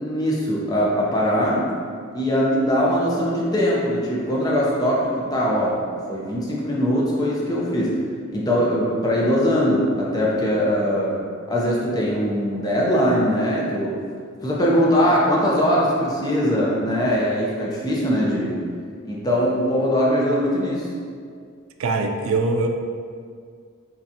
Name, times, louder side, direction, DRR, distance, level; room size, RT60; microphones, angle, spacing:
voice 1, 0.0-1.7 2.1-7.9 8.3-11.2 11.5-14.0 14.4-18.6 19.0-20.9, equal, 20° left, -5 dB, 0.6 m, -21 dB
voice 2, 21.8-22.7, right 3 dB, 90° right, 4 dB, 0.4 m, -22 dB
5.7 x 2.4 x 2.7 m, 2.1 s
head